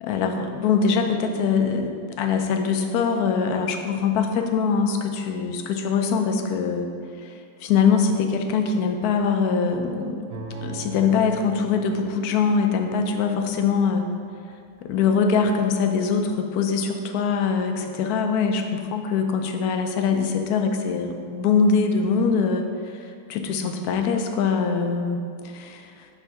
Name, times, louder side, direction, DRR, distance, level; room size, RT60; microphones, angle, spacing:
voice 1, 0.0-6.9 7.2-10.3 10.6-14.1 14.8-26.1, left 5 dB, 70° left, 5 dB, 1.0 m, -23 dB
sound 1, 10.3-14.3 14.8-14.9, right 4 dB, 65° right, 1.0 m, -40 dB
6.8 x 2.6 x 5.6 m, 2.3 s
omnidirectional pair, 1.9 m